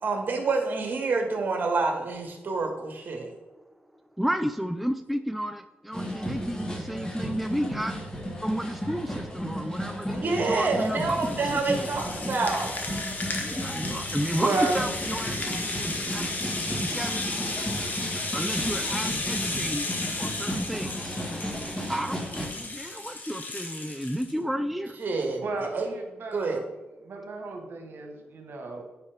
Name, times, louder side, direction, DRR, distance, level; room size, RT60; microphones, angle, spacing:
voice 1, 0.0-3.3 10.1-12.7 25.0-25.4 25.7-25.9 26.3-26.6, right 3 dB, 50° right, 3 dB, 1.6 m, -27 dB
voice 2, 4.2-8.0 8.4-11.9 13.4-17.4 18.3-19.9 20.2-21.2 21.9-24.9, equal, ahead, 8 dB, 0.3 m, -32 dB
sound 1, 5.9-22.5, equal, 20° left, 1.6 m, -35 dB
Rattle (instrument), 10.1-24.3, left 2 dB, 45° left, 1.3 m, -34 dB
voice 3, 14.4-14.9 25.4-26.6 27.0-28.9, right 3 dB, 70° right, 3 dB, 1.3 m, -32 dB
9.7 x 4.8 x 3.5 m, 1.1 s
cardioid pair, 100°, 4 cm